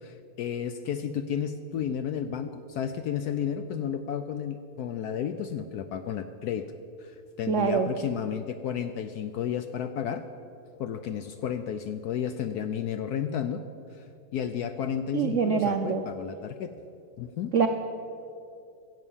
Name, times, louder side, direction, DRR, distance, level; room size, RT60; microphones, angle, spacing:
voice 1, 0.0-6.7 7.0-10.2 10.8-13.6 13.9-14.0 14.3-16.7 17.2-17.5, left 8 dB, 75° left, 9 dB, 0.9 m, -32 dB
voice 2, 7.5-7.9 15.1-16.1 17.5-17.7, right 6 dB, 75° right, 7 dB, 0.6 m, -25 dB
16.0 x 7.6 x 7.1 m, 2.5 s
omnidirectional pair, 2.1 m